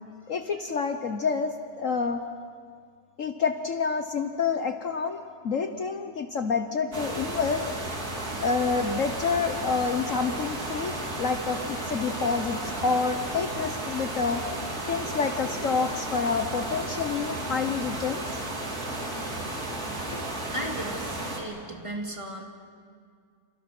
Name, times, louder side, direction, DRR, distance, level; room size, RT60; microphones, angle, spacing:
voice 1, 0.3-2.2 3.2-7.6 8.4-14.4 14.9-18.4 20.1-20.2, left 5 dB, 55° left, 7 dB, 1.3 m, -28 dB
sound 1, 6.9-21.4, right 2 dB, 65° right, 3.7 m, -33 dB
voice 2, 20.5-22.4, right 1 dB, 20° right, 0 dB, 2.8 m, -35 dB
28.5 x 28.0 x 6.1 m, 2.1 s
omnidirectional pair, 1.7 m